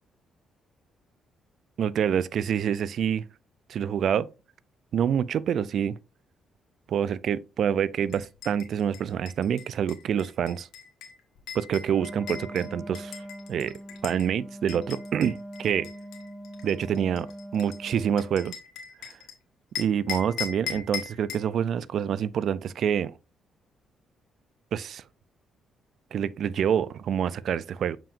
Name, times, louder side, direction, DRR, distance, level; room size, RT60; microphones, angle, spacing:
voice 1, 1.8-3.3 3.7-4.3 4.9-6.0 6.9-10.7 11.5-13.2 13.5-15.9 16.6-18.6 19.8-23.1 24.7-25.0 26.1-28.0, right 8 dB, 65° right, 0.4 m, -27 dB
sound 1, 8.1-14.3 14.7-19.3 19.8-21.5, left 8 dB, 90° left, 1.4 m, -39 dB
Wind instrument woodwind instrument, 11.8-18.5, right 1 dB, 5° right, 3.9 m, -42 dB
7.0 x 5.9 x 2.5 m
cardioid pair, 90°, 0 cm